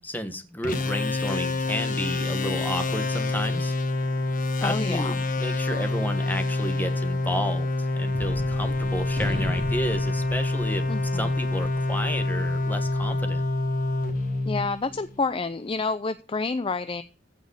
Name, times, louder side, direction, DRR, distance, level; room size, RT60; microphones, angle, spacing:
voice 1, 0.0-3.7 4.6-10.8 11.1-13.4, equal, 10° left, 8 dB, 1.5 m, -32 dB
sound 1, 0.6-15.2, left 2 dB, 45° left, 1.4 m, -27 dB
voice 2, 4.6-5.2 10.9-11.2 14.4-17.0, left 4 dB, 30° left, 12 dB, 0.5 m, -28 dB
Gunshot gunfire, 8.1-14.7, left 1 dB, 50° right, 4.7 m, -38 dB
15.5 x 5.2 x 6.5 m, 0.36 s
head